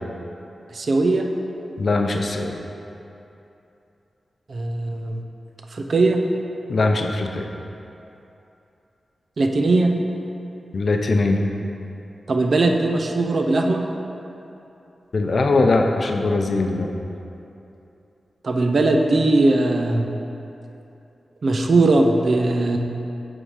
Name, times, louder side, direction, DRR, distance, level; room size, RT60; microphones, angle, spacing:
voice 1, 0.7-1.3 4.5-5.2 5.7-6.2 9.4-9.9 12.3-13.9 18.4-20.1 21.4-22.8, right 2 dB, 65° right, 3 dB, 0.6 m, -19 dB
voice 2, 1.8-2.6 6.7-7.4 10.7-11.4 15.1-16.9, left 3 dB, 65° left, 3 dB, 0.6 m, -21 dB
8.0 x 3.7 x 4.9 m, 2.9 s
cardioid pair, 40°, 0 cm